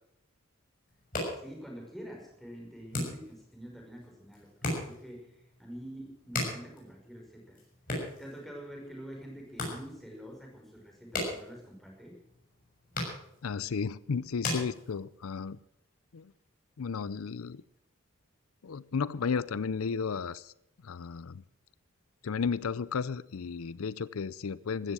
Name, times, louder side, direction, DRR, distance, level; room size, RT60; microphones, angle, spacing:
sound 1, 0.9-15.4, left 2 dB, 40° left, 6.6 m, -40 dB
voice 1, 1.3-7.7 8.1-12.2, equal, ahead, -1 dB, 5.3 m, -46 dB
voice 2, 13.4-15.6 16.1-16.3 16.8-17.6 18.6-20.5 20.8-21.4 22.2-24.9, left 5 dB, 90° left, 19 dB, 0.5 m, -33 dB
15.5 x 13.5 x 6.2 m, 0.78 s
head